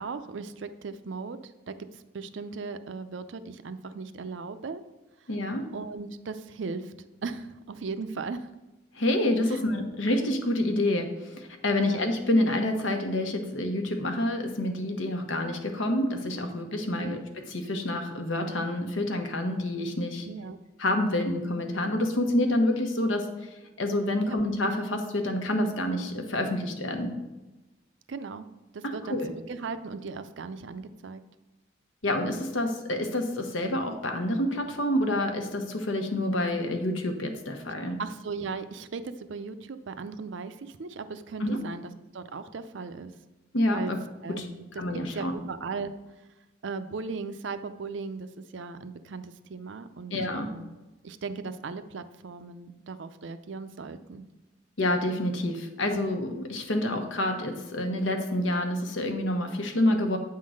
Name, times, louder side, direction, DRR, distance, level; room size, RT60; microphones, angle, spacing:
voice 1, 0.0-4.8 5.7-6.9 7.2-8.5 9.5-9.6 11.7-12.0 17.0-17.2 20.2-20.6 24.2-24.4 28.1-28.5 28.7-29.2 29.5-31.2 38.0-43.1 43.7-43.9 44.2-44.8 45.1-45.9 46.6-50.8 51.0-54.3 55.8-56.1, right 4 dB, 75° right, 11 dB, 0.5 m, -37 dB
voice 2, 5.3-5.7 8.9-17.2 17.5-20.3 20.8-27.2 28.8-29.3 32.0-38.0 41.4-41.6 43.5-44.0 44.4-44.5 44.8-45.3 50.1-50.5 54.8-60.2, left 1 dB, 85° left, 4 dB, 1.1 m, -28 dB
8.6 x 3.8 x 6.3 m, 1.1 s
head